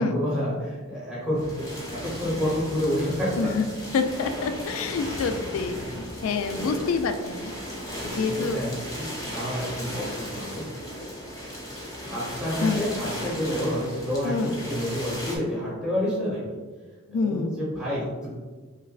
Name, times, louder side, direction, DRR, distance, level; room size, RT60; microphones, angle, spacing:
voice 1, 0.0-3.5 6.5-6.7 7.8-10.6 12.0-16.4 17.1-18.3, equal, 5° right, -8 dB, 1.0 m, -29 dB
sound 1, 1.3-15.4, equal, 15° left, 0.8 m, -36 dB
voice 2, 3.9-7.5 8.0-8.6 12.6-12.8 14.2-14.5 17.1-17.6, left 4 dB, 85° left, 8 dB, 0.4 m, -27 dB
5.7 x 2.2 x 2.4 m, 1.3 s
head